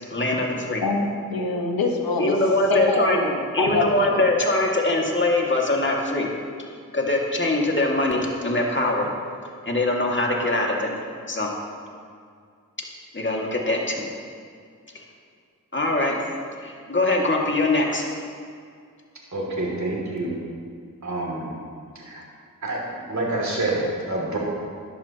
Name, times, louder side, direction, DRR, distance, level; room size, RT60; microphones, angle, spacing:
voice 1, 0.1-0.8 2.2-3.2 3.5-6.3 6.9-9.1 9.7-10.9 11.3-11.5 13.1-14.0 14.9-15.0 15.7-16.2 16.6-18.1, left 2 dB, 35° left, -1 dB, 2.2 m, -22 dB
voice 2, 0.8-2.4 2.7-4.2, left 3 dB, 85° left, 2 dB, 1.3 m, -25 dB
voice 3, 19.3-20.4 21.0-21.5 22.0-22.2 22.6-22.8 23.1-24.4, right 2 dB, 55° right, -3 dB, 2.8 m, -27 dB
13.5 x 11.0 x 3.0 m, 2.2 s
cardioid pair, 45°, 35 cm